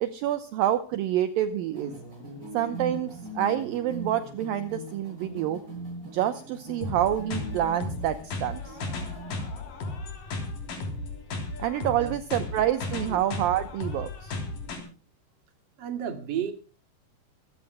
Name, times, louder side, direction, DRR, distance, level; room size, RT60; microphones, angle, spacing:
voice 1, 0.0-1.9 2.5-5.6 6.1-8.8 11.6-14.3, right 11 dB, 75° right, 10 dB, 2.3 m, -27 dB
sound 1, 1.7-9.3, right 1 dB, 20° right, 7.0 m, -40 dB
sound 2, 6.8-14.8, left 2 dB, 55° left, 4.7 m, -35 dB
voice 2, 15.8-16.5, right 9 dB, 35° right, 5 dB, 2.0 m, -32 dB
26.0 x 15.5 x 2.2 m, 0.37 s
omnidirectional pair, 4.8 m